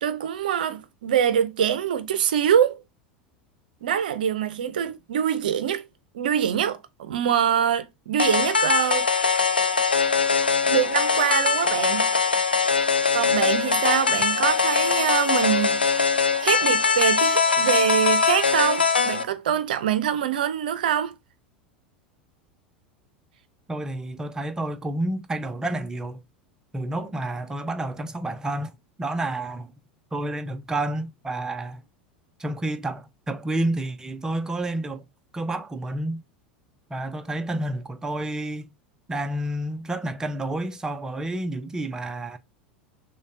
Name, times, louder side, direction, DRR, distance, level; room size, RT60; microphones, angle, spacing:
voice 1, 0.0-2.8 3.8-5.8 6.1-9.1 10.6-12.1 13.1-21.1, right 9 dB, 65° right, 0.6 m, -24 dB
sound 1, 8.2-19.2, left 5 dB, 85° left, 0.4 m, -22 dB
voice 2, 23.7-26.2 26.7-29.7 30.1-31.8 32.4-35.1 35.3-36.2 36.9-38.7 39.1-42.4, right 1 dB, 10° right, 0.7 m, -30 dB
6.5 x 2.3 x 2.6 m
figure-of-eight pair, 80°, 5 cm